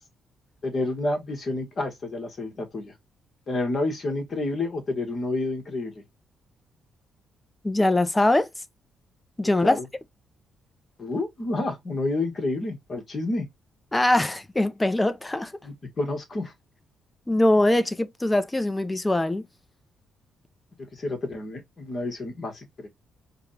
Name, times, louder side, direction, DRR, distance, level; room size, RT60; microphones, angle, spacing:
voice 1, 0.6-2.9 3.5-6.0 9.6-9.8 11.0-13.5 15.6-16.5 20.9-22.9, left 2 dB, 50° left, 1.7 m, -29 dB
voice 2, 7.6-8.5 9.4-9.8 13.9-15.5 17.3-19.5, left 1 dB, 15° left, 0.7 m, -22 dB
4.8 x 2.4 x 3.2 m
cardioid pair, 70°, 0 cm